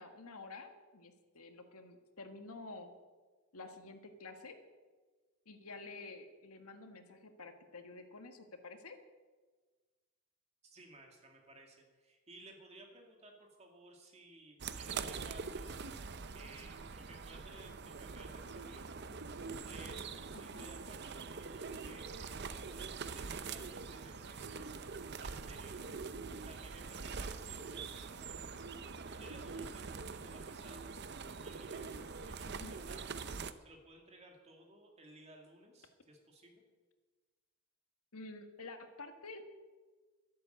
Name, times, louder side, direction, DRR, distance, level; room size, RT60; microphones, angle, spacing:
voice 1, 0.0-2.9 3.5-4.6 5.5-9.0 20.3-20.7 32.5-32.8 38.1-39.4, left 3 dB, 80° left, 6 dB, 1.7 m, -50 dB
voice 2, 10.6-15.8 16.3-19.0 19.6-26.1 26.4-28.8 29.0-33.3 33.6-36.6, right 1 dB, 30° right, 2 dB, 2.4 m, -58 dB
sound 1, 14.6-33.5, right 5 dB, 50° right, 0.6 m, -44 dB
12.0 x 11.5 x 8.1 m, 1.4 s
head